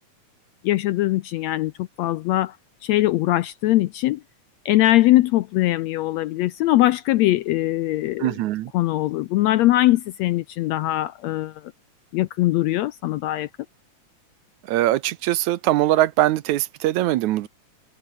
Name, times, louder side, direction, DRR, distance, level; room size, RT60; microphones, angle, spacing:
voice 1, 0.6-2.6 2.8-4.2 4.6-8.3 8.7-11.6 12.1-13.5, left 16 dB, 75° left, 1.6 m, -21 dB
voice 2, 8.2-8.7 14.6-17.5, right 14 dB, 75° right, 2.1 m, -21 dB
open air
omnidirectional pair, 3.6 m